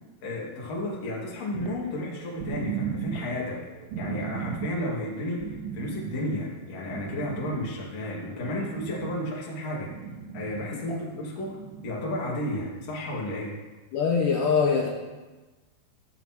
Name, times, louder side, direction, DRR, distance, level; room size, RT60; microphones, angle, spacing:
voice 1, 0.2-3.6 4.0-9.9 10.3-11.6 11.8-13.6, left 1 dB, 45° left, -4 dB, 3.0 m, -32 dB
sound 1, 1.5-9.4 9.7-10.7 11.4-12.2 12.9-13.0, right 6 dB, 75° right, 2.3 m, -37 dB
voice 2, 13.9-14.9, left 5 dB, 80° left, 0 dB, 1.9 m, -23 dB
13.5 x 13.5 x 3.1 m, 1.2 s
omnidirectional pair, 5.0 m